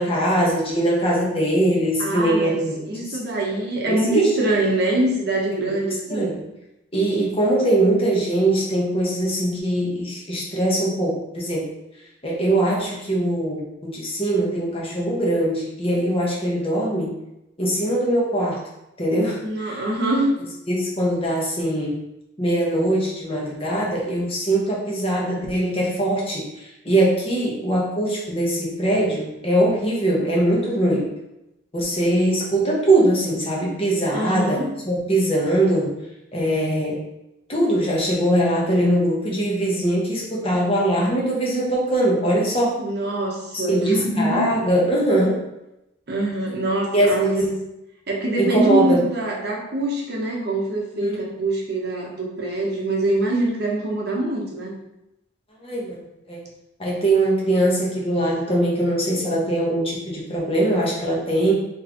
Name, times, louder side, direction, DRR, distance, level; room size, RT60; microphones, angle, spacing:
voice 1, 0.0-2.8 3.9-4.3 5.6-5.7 6.1-6.4 6.9-11.7 12.2-17.1 17.6-18.6 19.0-19.4 19.6-19.8 20.7-22.0 22.4-26.5 26.8-31.1 31.7-34.6 34.9-36.0 36.3-37.0 37.5-42.8 43.5-45.4 46.9-47.5 48.4-49.0 51.0-51.5 55.6-56.4 56.8-61.5, right 1 dB, 30° left, -4 dB, 1.2 m, -21 dB
voice 2, 2.0-6.4 19.4-20.3 34.1-34.7 42.8-44.5 46.1-47.5 48.1-54.7, right 1 dB, 55° right, -2 dB, 1.0 m, -24 dB
4.3 x 3.2 x 3.8 m, 0.89 s
head